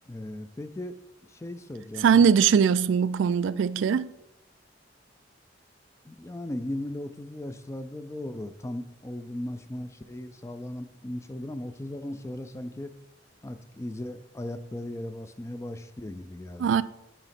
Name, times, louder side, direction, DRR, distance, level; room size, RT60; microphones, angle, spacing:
voice 1, 0.1-0.9 1.3-2.3 6.1-12.9 13.4-16.8, left 1 dB, 15° left, 0.4 m, -37 dB
voice 2, 2.0-4.1 16.6-16.8, right 7 dB, 85° right, 0.3 m, -21 dB
9.0 x 3.0 x 5.8 m
head